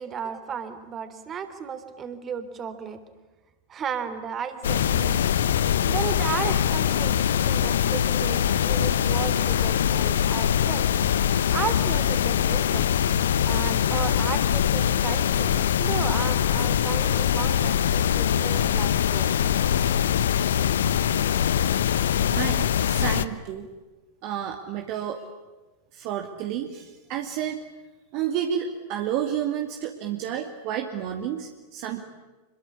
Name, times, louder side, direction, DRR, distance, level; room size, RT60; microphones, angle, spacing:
voice 1, 0.0-3.0 3.7-5.2 5.9-10.9 11.5-12.9 13.4-15.5 15.8-19.3, right 7 dB, 25° right, 10 dB, 3.4 m, -34 dB
sound 1, 4.6-23.3, left 9 dB, 60° left, 1.0 m, -23 dB
voice 2, 22.3-23.7 24.2-25.2 25.9-27.6 28.1-32.0, right 9 dB, 45° right, 3 dB, 2.5 m, -30 dB
27.0 x 22.5 x 9.7 m, 1.2 s
figure-of-eight pair, 90°, 0 cm